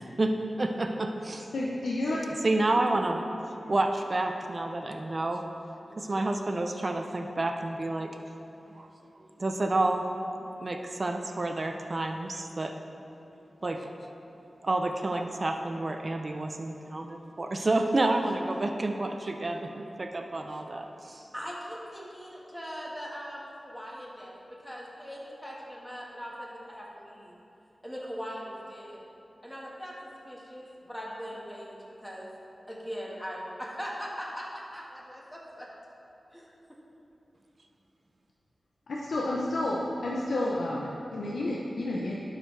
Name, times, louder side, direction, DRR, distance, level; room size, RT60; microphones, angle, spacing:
voice 1, 0.6-1.5 2.4-3.2 3.7-5.4 6.0-8.1 8.7-8.9 9.4-10.0 10.6-12.7 13.6-13.9 14.6-21.2, right 2 dB, 45° right, 4 dB, 0.5 m, -29 dB
voice 2, 1.5-2.2 38.9-42.1, left 1 dB, 90° left, -4 dB, 0.6 m, -30 dB
voice 3, 5.9-6.2 21.1-27.4 27.8-29.0 29.4-29.9 30.2-32.3 32.7-35.7 36.3-36.5, equal, 5° left, -4 dB, 1.6 m, -40 dB
11.5 x 5.0 x 3.3 m, 2.9 s
wide cardioid pair, 65°, 0 cm